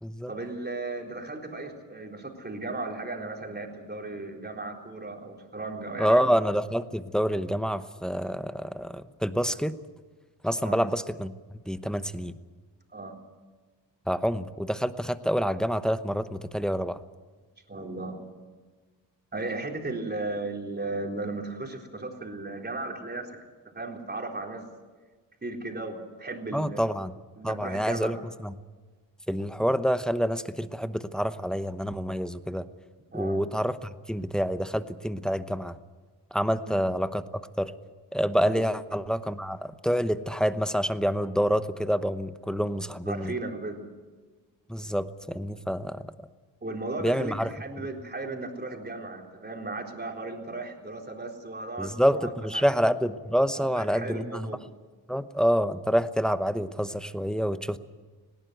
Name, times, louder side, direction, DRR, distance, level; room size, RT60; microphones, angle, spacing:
voice 1, 0.3-6.3 10.6-10.8 12.9-13.2 17.7-18.2 19.3-23.4 23.6-24.7 25.4-26.8 27.4-28.1 33.1-33.4 36.6-36.8 38.4-38.6 43.1-43.8 46.6-52.6 53.5-54.6, right 2 dB, 20° right, 1 dB, 3.8 m, -36 dB
voice 2, 6.0-9.7 10.4-11.3 11.7-12.3 14.1-17.0 26.5-27.2 27.4-28.2 28.4-28.5 29.3-32.6 33.1-35.8 36.3-37.7 38.1-43.3 44.7-46.0 47.0-47.5 51.8-54.5 55.1-57.8, equal, ahead, 11 dB, 0.9 m, -27 dB
19.5 x 17.5 x 8.0 m, 1.4 s
cardioid pair, 90°, 44 cm